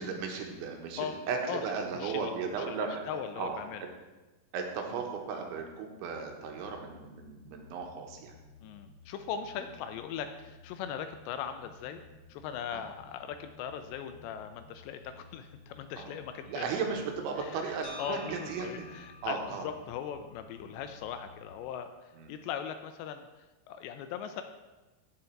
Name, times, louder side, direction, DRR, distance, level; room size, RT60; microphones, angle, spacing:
voice 1, 0.0-3.0 3.4-3.6 4.5-8.3 12.7-12.8 16.0-16.1 16.5-18.9 19.2-19.7 20.6-20.7 22.2-22.3, right 5 dB, 80° right, 2 dB, 3.6 m, -36 dB
voice 2, 1.0-1.7 1.9-3.8 8.6-12.0 12.3-16.7 17.4-17.7 18.0-24.4, left 8 dB, 85° left, 8 dB, 2.7 m, -39 dB
sound 1, 6.4-21.6, left 3 dB, 65° left, 1.4 m, -56 dB
sound 2, 17.8-21.9, left 2 dB, 40° left, 1.8 m, -51 dB
15.5 x 5.2 x 4.5 m, 1.1 s
omnidirectional pair, 5.3 m